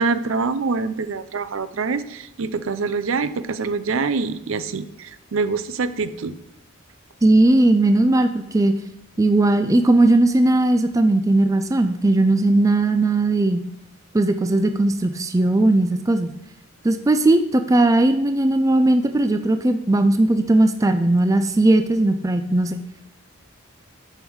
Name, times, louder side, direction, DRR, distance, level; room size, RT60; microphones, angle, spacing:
voice 1, 0.0-6.4, right 4 dB, 70° right, 13 dB, 0.5 m, -25 dB
voice 2, 7.2-8.8 9.2-13.6 14.1-16.3 16.8-22.8, right 2 dB, 15° right, 8 dB, 0.3 m, -18 dB
8.0 x 5.5 x 6.2 m, 0.83 s
head